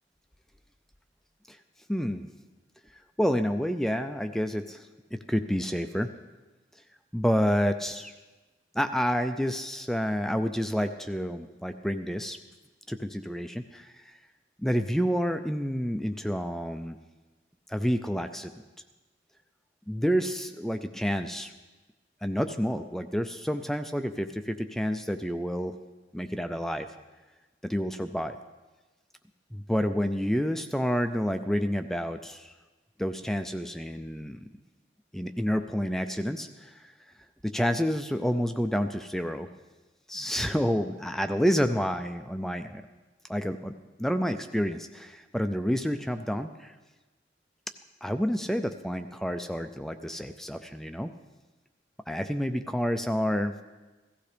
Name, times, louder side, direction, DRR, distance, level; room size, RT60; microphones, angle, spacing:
voice 1, 1.9-2.3 2.9-6.1 7.1-8.1 8.7-12.4 12.9-14.2 14.6-17.0 17.7-18.5 19.9-21.5 22.2-25.8 26.1-26.9 27.6-28.4 29.5-32.5 33.0-34.5 35.1-36.9 37.4-39.5 40.1-42.8 43.3-46.7 48.0-51.1 52.1-53.5, equal, ahead, 7 dB, 0.3 m, -29 dB
16.5 x 14.5 x 3.4 m, 1.2 s
head